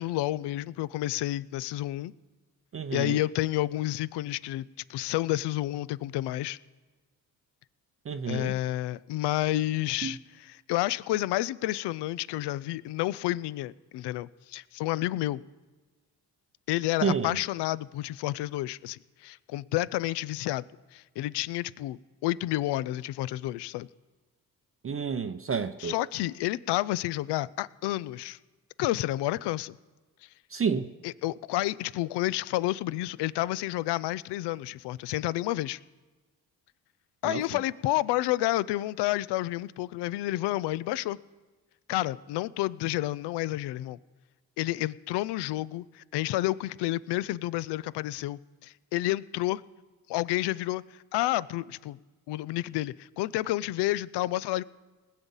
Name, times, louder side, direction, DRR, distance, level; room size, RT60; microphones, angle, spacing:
voice 1, 0.0-2.1 2.9-6.6 8.3-15.4 16.7-20.6 20.9-23.9 25.8-28.4 28.8-29.8 31.0-35.8 37.2-41.2 41.9-44.0 44.6-49.6 50.1-52.0 52.3-54.6, left 16 dB, 70° left, 0.5 m, -30 dB
voice 2, 2.7-3.2 8.1-8.5 10.0-10.1 17.0-17.3 24.8-25.9 30.5-30.9 37.2-37.4, right 6 dB, 30° right, 0.6 m, -29 dB
19.5 x 7.3 x 5.5 m
supercardioid pair, 55°, 42 cm